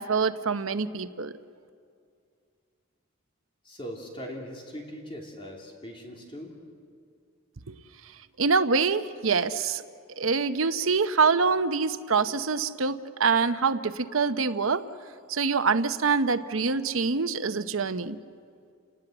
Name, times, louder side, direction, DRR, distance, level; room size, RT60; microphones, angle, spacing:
voice 1, 0.0-1.3 7.7-7.8 8.0-8.1 8.4-9.8 10.2-14.8 15.3-18.2, right 5 dB, 80° right, 11 dB, 0.9 m, -25 dB
voice 2, 3.6-6.6, equal, 25° left, 0 dB, 3.0 m, -40 dB
30.0 x 19.5 x 7.9 m, 2.3 s
head